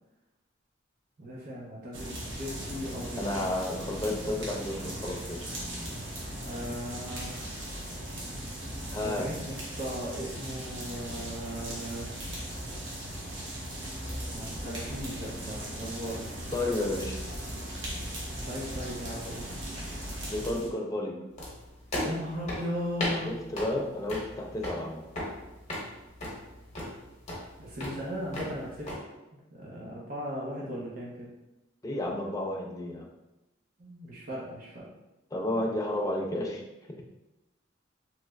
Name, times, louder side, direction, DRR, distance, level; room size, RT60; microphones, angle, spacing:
voice 1, 1.2-3.3 6.4-7.7 9.0-12.2 14.3-16.3 18.4-19.5 22.0-23.4 27.6-28.9 29.3-31.3 33.8-34.9, equal, 45° right, -5 dB, 0.6 m, -37 dB
sound 1, 1.9-20.7, equal, 80° right, 0.8 m, -38 dB
voice 2, 3.2-5.4 8.9-9.3 16.5-17.2 20.3-21.2 23.2-25.0 31.8-33.1 35.3-36.6, left 1 dB, 20° left, 1 dB, 0.4 m, -31 dB
sound 2, 21.4-29.0, left 1 dB, 40° left, 1.0 m, -37 dB
3.1 x 2.0 x 3.4 m, 0.97 s
head